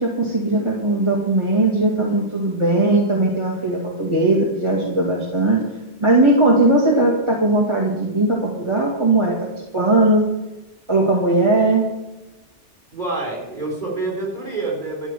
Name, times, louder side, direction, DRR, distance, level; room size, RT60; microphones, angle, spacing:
voice 1, 0.0-5.6 6.0-9.4 9.7-10.2 10.9-11.9, right 2 dB, 25° right, -3 dB, 2.2 m, -18 dB
voice 2, 12.9-15.1, right 3 dB, 40° right, -1 dB, 4.2 m, -27 dB
13.0 x 6.2 x 9.2 m, 1.0 s
omnidirectional pair, 1.2 m